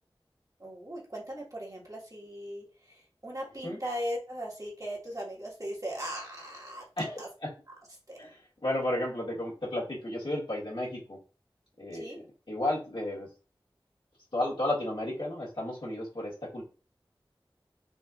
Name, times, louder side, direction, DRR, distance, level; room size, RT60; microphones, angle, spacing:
voice 1, 0.6-6.8 7.2-7.3 8.1-8.2 11.9-12.2, equal, 40° right, -3 dB, 1.4 m, -38 dB
voice 2, 7.0-7.5 8.2-8.4 8.6-11.2 11.8-13.3 14.3-16.6, left 1 dB, 70° left, -5 dB, 1.7 m, -33 dB
4.3 x 2.7 x 2.3 m, 0.35 s
wide cardioid pair, 50°, 9 cm